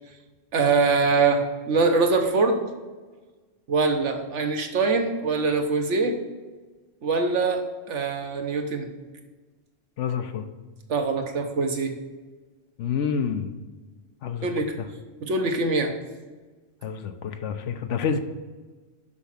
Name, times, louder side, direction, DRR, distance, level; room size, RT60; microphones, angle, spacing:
voice 1, 0.5-2.6 3.7-6.1 7.0-8.9 10.9-11.9 14.4-14.8 15.2-15.9, right 4 dB, 75° right, 4 dB, 1.4 m, -23 dB
voice 2, 10.0-10.5 12.8-13.5 14.2-14.5 14.8-14.9 16.8-18.2, left 6 dB, 75° left, 8 dB, 1.1 m, -28 dB
6.9 x 6.1 x 5.7 m, 1.3 s
omnidirectional pair, 1.3 m